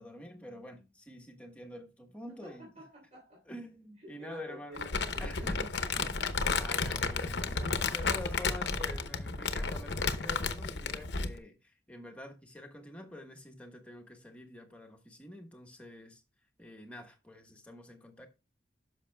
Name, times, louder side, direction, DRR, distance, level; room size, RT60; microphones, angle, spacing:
voice 1, 0.0-2.7 3.5-4.9 5.2-7.6 7.9-16.2 16.6-18.3, left 1 dB, 5° left, 1.2 m, -47 dB
voice 2, 2.3-3.4 4.0-6.3 7.4-8.2, equal, 35° right, 3.3 m, -51 dB
Crumpling crinkling, 4.8-11.4, left 4 dB, 75° left, 0.8 m, -32 dB
10.0 x 6.5 x 2.2 m
head